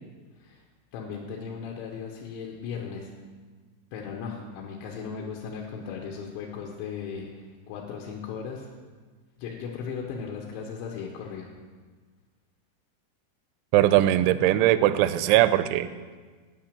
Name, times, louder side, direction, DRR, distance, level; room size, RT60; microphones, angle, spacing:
voice 1, 0.9-3.1 3.9-8.7 9.4-11.5, left 6 dB, 80° left, -1 dB, 3.1 m, -37 dB
voice 2, 13.7-15.9, right 14 dB, 85° right, 13 dB, 2.9 m, -20 dB
9.4 x 9.0 x 6.7 m, 1.5 s
omnidirectional pair, 5.5 m